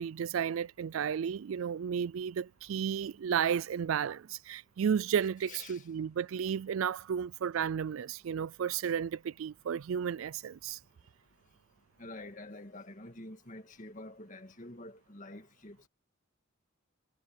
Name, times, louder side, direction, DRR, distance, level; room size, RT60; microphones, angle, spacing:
voice 1, 0.0-10.8, right 7 dB, 80° right, 0.4 m, -33 dB
voice 2, 5.5-5.9 12.0-15.9, left 2 dB, 40° left, 2.0 m, -47 dB
head